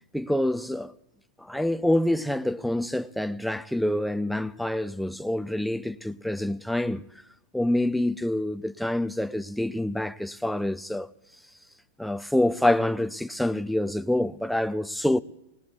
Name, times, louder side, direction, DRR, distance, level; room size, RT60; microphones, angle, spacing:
voice 1, 0.1-0.9 1.4-7.0 7.5-11.1 12.0-15.2, left 1 dB, ahead, 0.5 m, -26 dB
27.5 x 20.0 x 2.4 m
hypercardioid pair, 135°, 0 cm